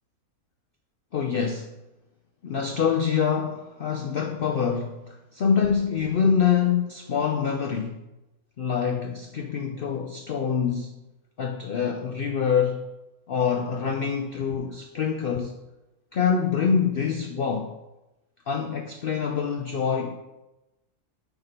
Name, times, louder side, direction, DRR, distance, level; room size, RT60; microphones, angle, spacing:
voice 1, 1.1-1.7 2.4-8.0 8.6-10.9 11.4-12.8 13.3-15.6 16.1-17.7 18.5-20.1, left 7 dB, 70° left, 5 dB, 0.5 m, -25 dB
9.2 x 3.5 x 5.7 m, 0.99 s
omnidirectional pair, 1.6 m